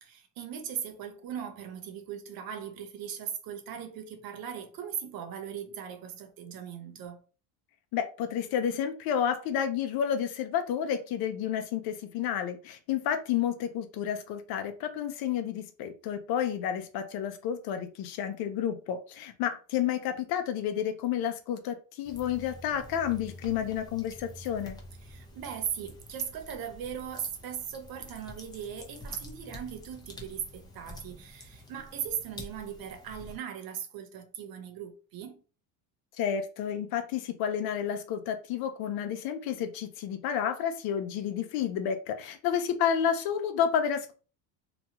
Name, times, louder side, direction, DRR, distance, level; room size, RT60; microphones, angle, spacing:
voice 1, 0.0-7.2 25.0-35.4, right 8 dB, 50° right, 0.7 m, -39 dB
voice 2, 7.9-24.8 36.2-44.1, left 9 dB, 55° left, 0.6 m, -30 dB
sound 1, 22.0-33.4, left 1 dB, 10° left, 0.6 m, -48 dB
2.9 x 2.2 x 2.8 m
supercardioid pair, 95°, 44 cm